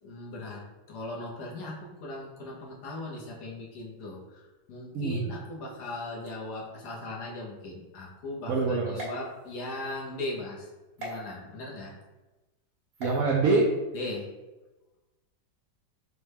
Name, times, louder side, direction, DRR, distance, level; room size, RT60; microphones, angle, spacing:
voice 1, 0.0-4.4 4.7-10.7 11.0-12.0 13.9-14.3, left 2 dB, 65° left, -3 dB, 1.3 m, -38 dB
voice 2, 4.9-5.3 8.5-9.0 13.0-13.7, right 3 dB, 80° right, -2 dB, 0.8 m, -25 dB
sound 1, 8.9-9.9 11.0-11.2 12.9-13.2, right 1 dB, 45° right, 0.8 m, -40 dB
5.2 x 2.2 x 3.3 m, 1.1 s
omnidirectional pair, 2.0 m